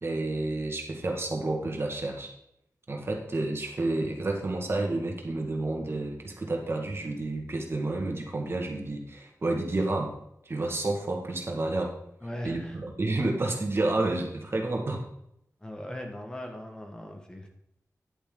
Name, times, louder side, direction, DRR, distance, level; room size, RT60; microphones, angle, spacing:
voice 1, 0.0-2.3 2.9-10.1 10.5-12.0 12.4-15.1, right 2 dB, 45° right, 2 dB, 2.0 m, -30 dB
voice 2, 12.2-12.8 15.6-17.5, left 1 dB, 15° left, 2 dB, 1.7 m, -39 dB
10.5 x 8.3 x 4.0 m, 0.77 s
wide cardioid pair, 90°, 6 cm